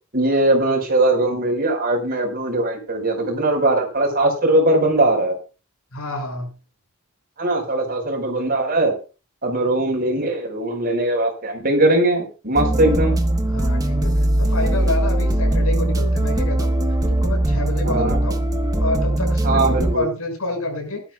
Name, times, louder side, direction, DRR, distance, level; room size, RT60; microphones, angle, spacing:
voice 1, 0.1-5.4 7.4-8.9 9.4-13.2 17.8-18.2 19.4-20.1, right 2 dB, 45° right, 2 dB, 5.1 m, -20 dB
voice 2, 5.9-6.5 13.5-14.1 14.4-16.7 17.1-18.4 18.8-21.0, left 1 dB, 75° left, 3 dB, 6.6 m, -28 dB
sound 1, 12.6-20.0, right 1 dB, 15° right, 1.2 m, -20 dB
19.0 x 12.0 x 2.4 m, 0.34 s
head